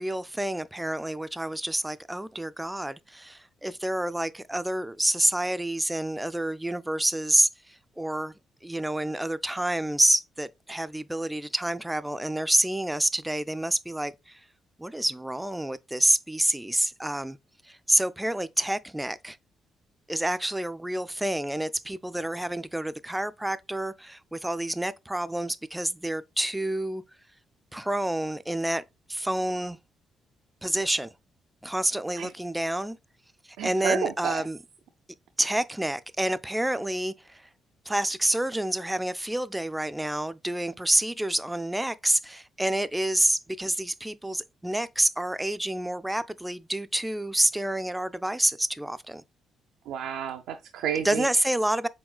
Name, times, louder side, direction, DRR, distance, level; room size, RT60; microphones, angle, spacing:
voice 1, 0.0-8.3 8.6-14.4 14.8-17.4 17.6-19.4 20.1-27.0 27.7-28.8 29.1-29.8 30.6-31.1 31.6-33.0 33.6-34.6 35.4-37.5 37.9-49.2 51.0-51.9, right 1 dB, 5° right, 0.3 m, -28 dB
voice 2, 33.6-34.4 49.9-51.3, right 9 dB, 90° right, 0.4 m, -31 dB
4.7 x 3.6 x 2.2 m
cardioid pair, 90°, 0 cm